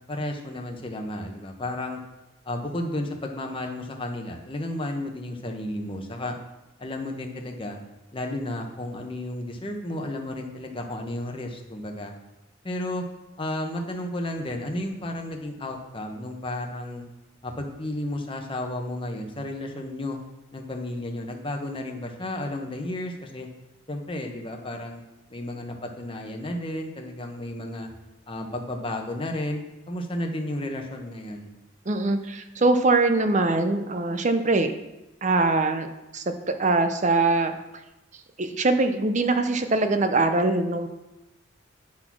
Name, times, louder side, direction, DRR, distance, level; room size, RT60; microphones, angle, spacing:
voice 1, 0.1-2.0 2.4-6.4 6.8-7.8 8.1-12.1 12.6-13.0 13.4-17.0 17.4-20.2 20.5-23.5 23.9-25.0 25.3-27.9 28.3-29.6 29.9-31.5, left 1 dB, 25° left, 2 dB, 1.0 m, -32 dB
voice 2, 31.9-34.7 35.2-35.9 36.1-37.5 38.4-40.9, right 2 dB, 35° right, 8 dB, 0.6 m, -22 dB
9.8 x 4.1 x 6.0 m, 1.0 s
head